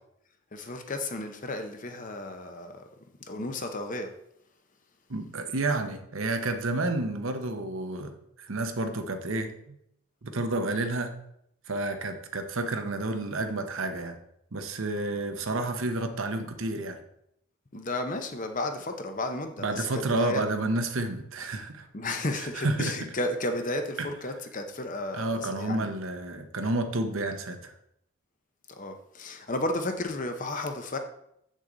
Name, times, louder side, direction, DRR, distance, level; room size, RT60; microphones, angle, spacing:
voice 1, 0.5-2.8 3.3-4.1 17.7-20.4 21.9-25.9 28.8-31.0, left 2 dB, 35° left, 0.8 m, -33 dB
voice 2, 5.1-9.8 10.2-11.1 11.7-14.2 14.5-17.0 19.6-21.9 22.4-23.0 24.0-24.1 25.1-27.7, right 2 dB, 65° right, 0.9 m, -30 dB
7.8 x 6.4 x 3.9 m
head